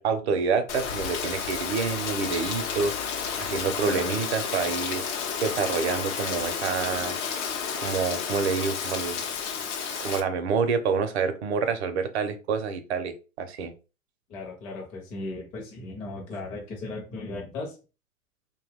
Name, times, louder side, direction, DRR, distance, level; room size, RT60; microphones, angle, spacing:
voice 1, 0.0-2.9 3.4-5.0 5.4-7.2 7.8-9.2 10.0-13.7, right 5 dB, 50° right, 0.7 m, -27 dB
Rain, 0.7-10.2, left 6 dB, 60° left, 0.7 m, -31 dB
voice 2, 14.3-17.7, left 2 dB, 20° left, 0.6 m, -36 dB
2.6 x 2.3 x 3.4 m
hypercardioid pair, 125°, 41 cm